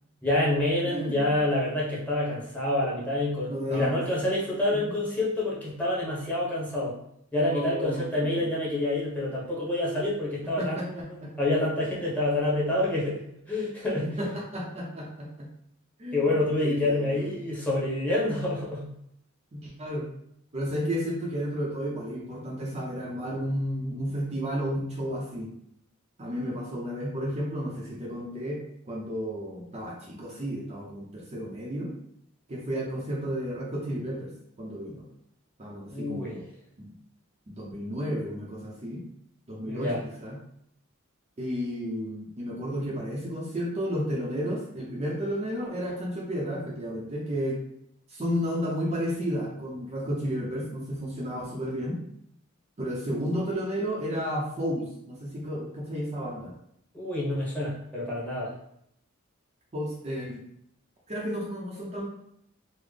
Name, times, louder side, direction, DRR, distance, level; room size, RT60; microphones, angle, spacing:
voice 1, 0.2-7.0 7.3-13.2 13.5-14.1 16.1-18.9 19.6-19.7 35.9-36.4 39.7-40.0 56.9-58.5, left 1 dB, 5° left, -7 dB, 1.0 m, -27 dB
voice 2, 0.9-1.3 3.5-4.0 4.7-4.8 7.4-8.5 10.6-11.3 14.0-15.5 16.0-17.3 19.5-20.1 20.5-25.5 26.2-31.9 32.5-34.3 34.6-35.1 35.6-36.5 36.8-36.9 37.5-39.0 39.5-39.9 40.2-40.4 41.4-47.6 48.1-52.0 52.8-56.5 59.7-60.4 61.1-62.1, equal, 30° right, -4 dB, 0.6 m, -32 dB
3.8 x 2.0 x 3.3 m, 0.72 s
head